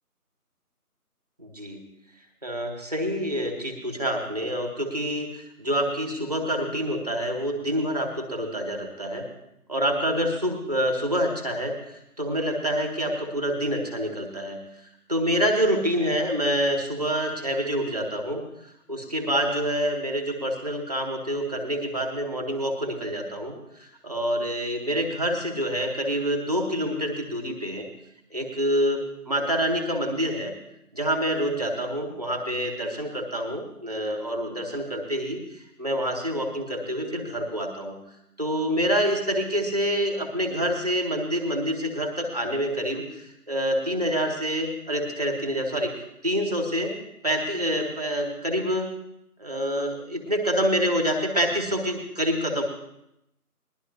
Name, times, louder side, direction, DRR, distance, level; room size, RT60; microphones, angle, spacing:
voice 1, 1.4-1.8 2.4-9.2 9.7-14.6 15.1-18.4 18.9-27.9 28.3-30.5 30.9-38.0 38.4-45.9 46.2-47.0 47.2-48.9 49.4-52.6, equal, 25° right, 3 dB, 1.4 m, -27 dB
21.0 x 11.5 x 2.7 m, 0.82 s
figure-of-eight pair, 170°, 46 cm